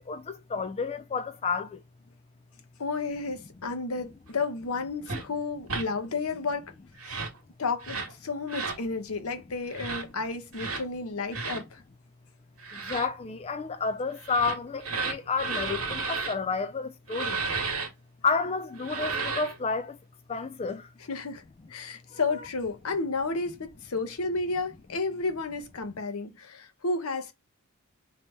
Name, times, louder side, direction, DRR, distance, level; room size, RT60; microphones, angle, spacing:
voice 1, 0.0-1.8 12.7-17.4 18.2-20.0 20.3-20.9 22.1-22.5, left 4 dB, 25° left, 0.3 m, -31 dB
voice 2, 2.8-6.6 7.0-7.2 7.6-11.8 21.1-21.4 21.7-27.3, left 3 dB, 75° left, 0.9 m, -32 dB
sound 1, 5.1-5.2 5.7-5.9 6.9-7.4 7.8-8.1 8.5-8.8 9.7-10.0 10.5-10.8 11.3-11.6 12.6-13.1 14.2-16.3 17.1-17.9 18.8-19.6, right 4 dB, 75° right, 1.5 m, -33 dB
3.4 x 3.2 x 4.1 m
head